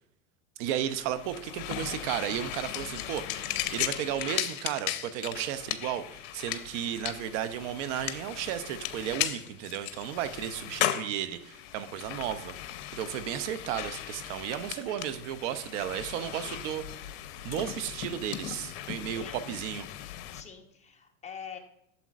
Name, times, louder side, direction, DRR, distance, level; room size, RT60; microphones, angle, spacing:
voice 1, 0.6-16.8 17.4-19.9, right 10 dB, 60° right, 12 dB, 0.7 m, -34 dB
sound 1, 0.7-20.4, left 12 dB, 65° left, 0.8 m, -37 dB
voice 2, 16.1-16.6 19.0-19.5 20.3-21.6, left 6 dB, 15° left, 3 dB, 1.0 m, -46 dB
9.3 x 7.0 x 2.4 m, 0.81 s
supercardioid pair, 120°, 41 cm